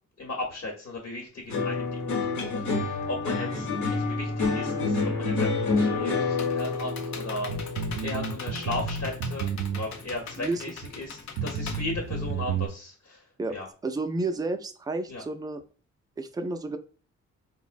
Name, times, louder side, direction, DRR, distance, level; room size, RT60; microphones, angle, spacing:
voice 1, 0.2-13.2 13.5-13.7 15.1-15.2, left 2 dB, 55° left, 0 dB, 0.9 m, -36 dB
sound 1, 1.5-10.0 10.3-10.9, left 3 dB, 90° left, 0.9 m, -29 dB
Computer keyboard, 5.8-12.7, left 5 dB, 70° left, 0.5 m, -42 dB
sound 2, 7.5-10.2 10.8-10.9 11.4-12.7, right 5 dB, 70° right, 0.5 m, -31 dB
voice 2, 13.8-15.6 16.2-16.8, right 2 dB, 15° right, 7 dB, 0.3 m, -31 dB
3.7 x 2.0 x 2.4 m, 0.37 s
cardioid pair, 70°, 29 cm